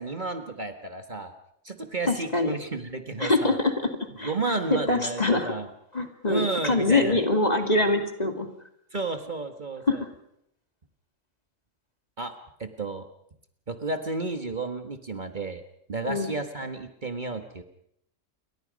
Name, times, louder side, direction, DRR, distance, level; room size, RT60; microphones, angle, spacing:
voice 1, 0.0-1.3 1.6-3.6 4.2-5.7 6.3-7.2 8.9-10.0 12.2-13.1 13.7-15.6 15.9-17.6, right 3 dB, 40° right, 6 dB, 1.7 m, -32 dB
voice 2, 2.1-2.5 3.2-3.7 4.2-4.3 4.7-5.5 5.9-8.5 9.9-10.0 16.1-16.3, left 2 dB, 30° left, 5 dB, 2.5 m, -24 dB
28.5 x 23.0 x 5.3 m, 0.72 s
omnidirectional pair, 1.3 m